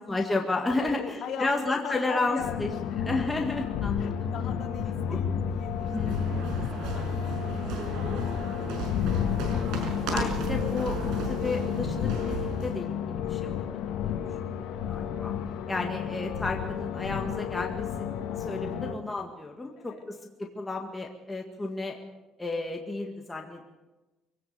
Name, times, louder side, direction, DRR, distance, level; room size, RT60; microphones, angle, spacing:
voice 1, 0.1-2.7 3.0-4.3 5.1-5.2 5.9-6.6 10.1-13.7 14.0-14.2 14.4-15.3 15.7-22.0 22.4-23.7, left 2 dB, 10° left, 1 dB, 1.9 m, -32 dB
voice 2, 0.7-3.0 4.0-8.9 14.5-14.8 19.8-20.1, left 6 dB, 55° left, 1 dB, 3.7 m, -41 dB
sound 1, 2.4-19.0, left 8 dB, 80° left, 1.8 m, -31 dB
sound 2, 5.6-12.8, right 4 dB, 80° right, 5.5 m, -36 dB
24.0 x 17.0 x 6.9 m, 1.1 s
cardioid pair, 135°, 0 cm